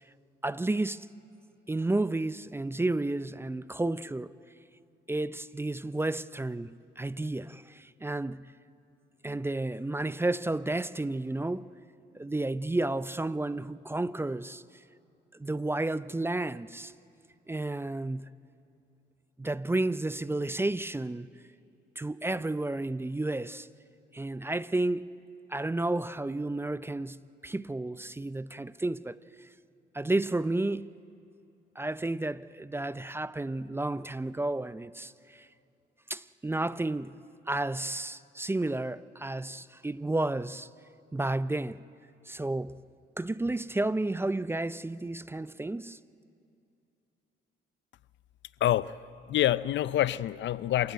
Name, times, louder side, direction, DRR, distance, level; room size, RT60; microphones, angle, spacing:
voice 1, 0.4-1.1 1.7-4.3 5.1-8.5 9.2-11.7 12.1-14.6 15.3-16.9 17.5-18.3 19.4-21.3 22.0-23.7 24.1-25.0 25.5-29.1 29.9-30.9 31.8-35.5 36.1-37.2 37.5-40.7 41.1-41.8 42.3-42.8 43.2-46.0, right 2 dB, 10° right, 0.5 m, -32 dB
voice 2, 48.6-49.0 49.3-50.9, left 13 dB, 65° left, 0.5 m, -26 dB
27.0 x 16.5 x 9.3 m
cardioid pair, 90°, 20 cm